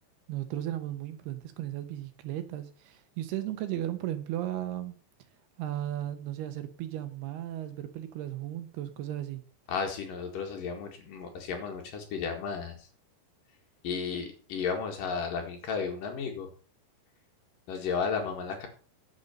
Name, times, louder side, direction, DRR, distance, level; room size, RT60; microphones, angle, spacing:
voice 1, 0.3-4.9 5.6-9.4, right 13 dB, 75° right, 2.8 m, -35 dB
voice 2, 9.7-12.9 13.8-16.5 17.7-18.7, left 5 dB, 60° left, 3.2 m, -33 dB
8.7 x 8.1 x 6.6 m
omnidirectional pair, 4.9 m